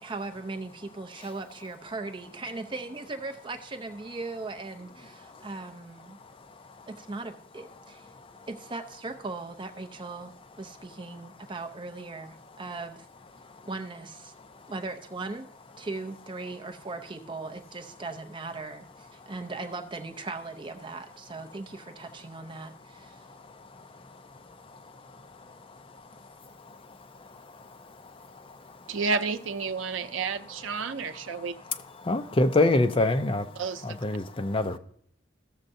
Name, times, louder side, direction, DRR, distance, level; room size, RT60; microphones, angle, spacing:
voice 1, 0.0-6.2 6.9-8.1 8.5-13.1 13.6-14.3 14.7-15.5 15.8-23.3, right 3 dB, 25° right, 6 dB, 0.5 m, -38 dB
voice 2, 28.9-31.6 33.5-34.0, right 4 dB, 85° right, 10 dB, 0.6 m, -31 dB
voice 3, 32.0-33.5 33.8-34.8, left 2 dB, 30° left, 8 dB, 0.4 m, -24 dB
15.5 x 6.5 x 2.6 m, 0.64 s
head